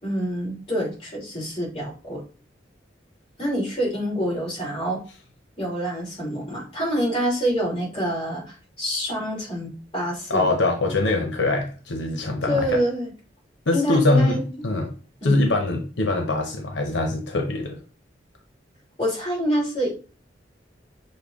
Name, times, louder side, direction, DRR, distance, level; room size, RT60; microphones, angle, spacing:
voice 1, 0.0-2.2 3.4-5.0 5.6-10.5 12.5-13.1 13.7-14.6 15.2-15.4 19.0-19.9, equal, 30° left, -4 dB, 2.6 m, -26 dB
voice 2, 10.3-12.8 13.7-14.9 15.2-17.8, left 2 dB, 85° left, 3 dB, 0.7 m, -23 dB
6.6 x 2.2 x 3.5 m, 0.36 s
head